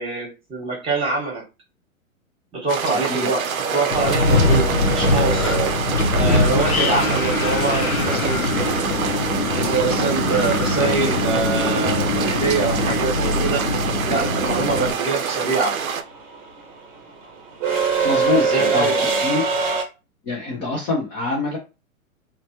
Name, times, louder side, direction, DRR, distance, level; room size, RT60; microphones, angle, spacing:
voice 1, 0.0-1.4 2.5-5.6 6.1-9.0 9.5-13.7 14.0-15.8 18.3-19.3, right 3 dB, 15° right, 1.2 m, -25 dB
sound 1, 2.7-16.0, right 7 dB, 75° right, 0.6 m, -26 dB
sound 2, 3.6-7.7 10.1-10.2 11.5-11.8 12.0-19.8, right 4 dB, 30° right, 0.8 m, -25 dB
Wind, 3.9-14.9, left 2 dB, 80° left, 0.7 m, -22 dB
voice 2, 14.6-14.9 18.0-19.4 20.2-21.6, left 3 dB, 20° left, 0.5 m, -25 dB
2.9 x 2.1 x 2.9 m
figure-of-eight pair, 110°, 42 cm